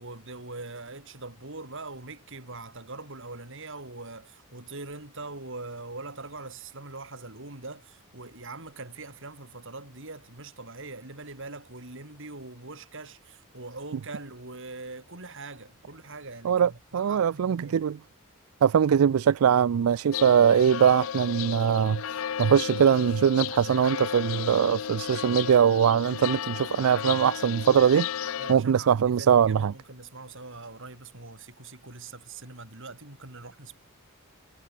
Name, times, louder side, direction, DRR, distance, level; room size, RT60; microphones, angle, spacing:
voice 1, 0.0-17.8 28.4-33.8, right 3 dB, 60° right, 5.0 m, -42 dB
voice 2, 16.4-18.0 18.6-29.7, right 8 dB, 75° right, 0.4 m, -22 dB
sound 1, 20.1-28.5, left 9 dB, 65° left, 0.5 m, -34 dB
head